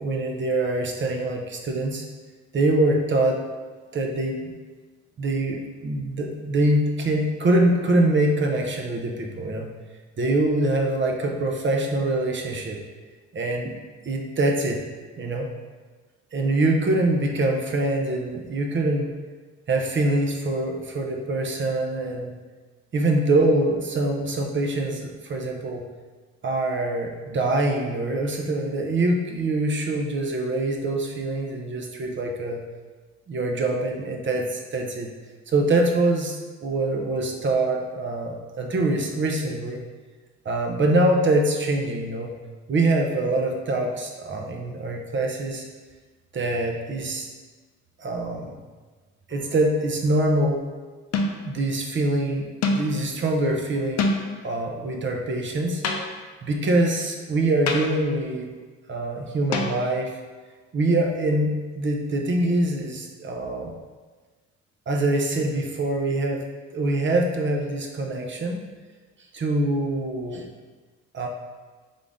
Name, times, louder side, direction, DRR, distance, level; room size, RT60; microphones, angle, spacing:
voice 1, 0.0-2.0 2.5-3.4 3.9-4.4 5.2-9.7 10.2-12.8 13.3-13.7 14.0-14.8 15.2-15.5 16.3-19.1 19.7-22.3 22.9-25.8 26.4-32.6 33.3-35.1 35.5-39.8 40.4-42.3 42.7-45.6 46.3-47.3 48.0-48.5 49.3-50.6 51.4-54.1 54.4-55.8 56.4-58.5 58.9-60.1 60.7-63.7 64.9-66.4 66.7-68.7 69.3-70.5 71.1-71.3, right 2 dB, 40° right, 2 dB, 0.7 m, -24 dB
sound 1, 49.3-49.7 51.1-51.5 52.6-53.0 54.0-54.5 55.8-56.4 57.7-58.1 59.5-60.2, left 3 dB, 60° left, 0.6 m, -27 dB
3.8 x 3.7 x 3.6 m, 1.4 s
cardioid pair, 90°, 30 cm